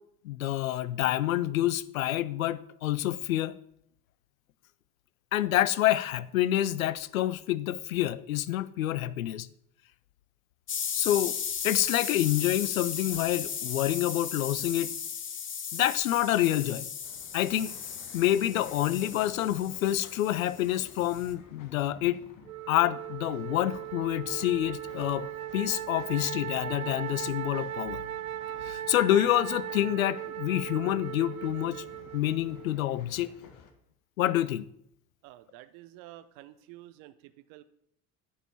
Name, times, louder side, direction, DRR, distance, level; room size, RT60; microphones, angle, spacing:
voice 1, 0.2-3.5 5.3-9.5 10.9-11.4 11.6-14.9 15.7-16.9 17.3-17.7 18.1-22.2 22.7-28.0 28.6-31.8 32.1-33.3 34.2-34.7, left 13 dB, 70° left, 0.6 m, -27 dB
sound 1, 10.7-21.3, left 7 dB, 30° left, 1.0 m, -36 dB
sound 2, 17.0-33.7, left 6 dB, 50° left, 1.4 m, -53 dB
Wind instrument woodwind instrument, 22.5-32.8, right 12 dB, 80° right, 0.6 m, -38 dB
voice 2, 35.2-37.6, right 15 dB, 55° right, 0.8 m, -50 dB
10.5 x 5.6 x 7.1 m
figure-of-eight pair, 60°, 42 cm